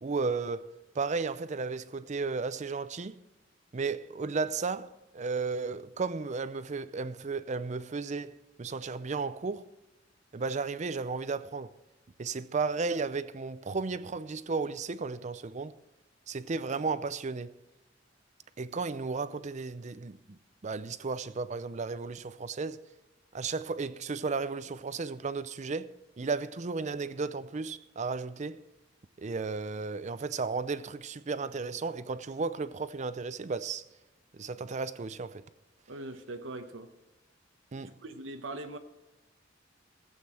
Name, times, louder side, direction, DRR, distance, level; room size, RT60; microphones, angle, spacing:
voice 1, 0.0-3.2 3.7-9.6 10.3-11.7 12.2-15.7 16.3-17.6 18.6-20.4 20.6-22.8 23.3-25.9 26.2-28.6 29.2-33.8 34.3-35.4 37.7-37.9, right 4 dB, 40° right, 0.5 m, -34 dB
voice 2, 35.9-36.9 37.8-38.8, right 2 dB, 80° right, 1.0 m, -41 dB
16.0 x 8.2 x 4.3 m
head